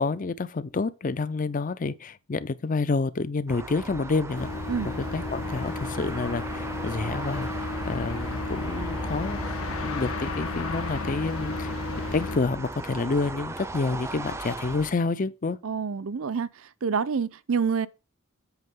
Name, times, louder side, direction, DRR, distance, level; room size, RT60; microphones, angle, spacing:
voice 1, 0.0-4.5 4.8-9.4 9.8-11.7 12.1-15.6, left 3 dB, 40° left, 0.5 m, -29 dB
sound 1, 3.5-14.9, right 2 dB, 15° right, 0.5 m, -37 dB
sound 2, 4.3-12.4, left 3 dB, 85° left, 1.8 m, -33 dB
voice 2, 15.6-16.5 16.8-17.9, right 6 dB, 70° right, 0.5 m, -27 dB
8.1 x 6.2 x 3.7 m
head